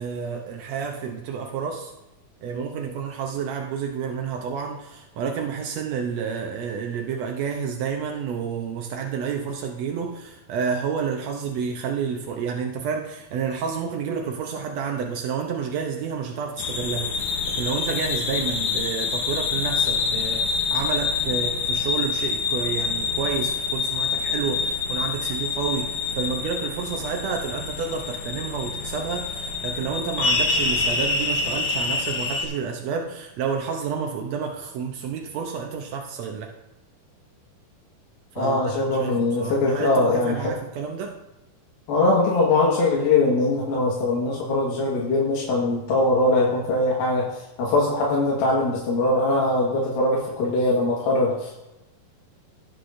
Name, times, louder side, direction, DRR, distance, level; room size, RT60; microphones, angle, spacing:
voice 1, 0.0-1.9 2.4-36.5 38.3-41.1, right 6 dB, 85° right, 2 dB, 1.5 m, -30 dB
sound 1, 16.6-32.5, left 4 dB, 70° left, 2.2 m, -26 dB
voice 2, 38.4-40.4 41.9-51.5, left 2 dB, 85° left, -4 dB, 3.3 m, -22 dB
16.5 x 8.2 x 2.6 m, 0.96 s
omnidirectional pair, 4.1 m